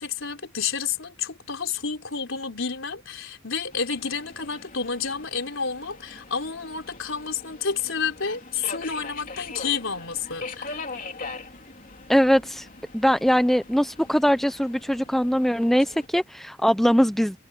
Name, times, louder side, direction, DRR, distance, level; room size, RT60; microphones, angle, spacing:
voice 1, 0.0-10.8, left 6 dB, 65° left, 4.4 m, -30 dB
Subway metro underground, 3.7-16.1, left 3 dB, 40° left, 3.7 m, -42 dB
voice 2, 12.1-12.7 12.9-17.4, equal, ahead, 0.4 m, -21 dB
head